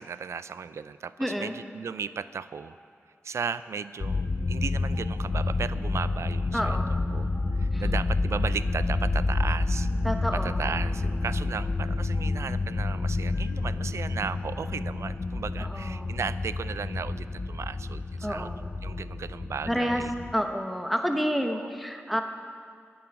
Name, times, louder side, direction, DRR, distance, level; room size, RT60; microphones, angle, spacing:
voice 1, 0.0-2.8 3.2-6.8 7.1-7.3 7.6-9.9 10.3-18.5 18.8-20.1 21.6-21.7, right 6 dB, 90° right, 15 dB, 0.3 m, -35 dB
voice 2, 1.2-1.5 6.5-6.9 7.7-7.8 10.0-10.6 15.6-16.2 18.2-18.6 19.7-20.0 20.3-22.2, equal, ahead, 5 dB, 0.9 m, -29 dB
Stream, 1.3-1.4 2.5-2.6 3.7-3.8 4.9-5.0 6.1-6.2 7.3-7.4 8.5-8.6 9.7-9.8 10.9-11.0 12.1-12.2 13.3-13.4 14.5-14.6 15.7-15.8, equal, 20° left, 4.2 m, -53 dB
sound 1, 4.0-20.3, left 3 dB, 55° left, 0.7 m, -29 dB
10.0 x 7.9 x 9.7 m, 2.2 s
wide cardioid pair, 120°, 5 cm